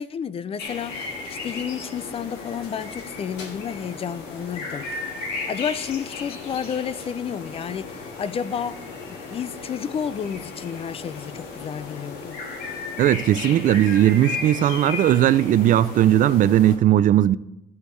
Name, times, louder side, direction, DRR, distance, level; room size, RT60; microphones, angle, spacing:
voice 1, 0.0-4.9 5.1-8.8 9.3-12.4, left 8 dB, 35° left, 0.4 m, -31 dB
sound 1, 0.6-16.8, left 4 dB, 90° left, 1.7 m, -35 dB
voice 2, 13.0-17.4, right 12 dB, 50° right, 0.4 m, -18 dB
12.5 x 8.1 x 3.2 m
cardioid pair, 110°, 17 cm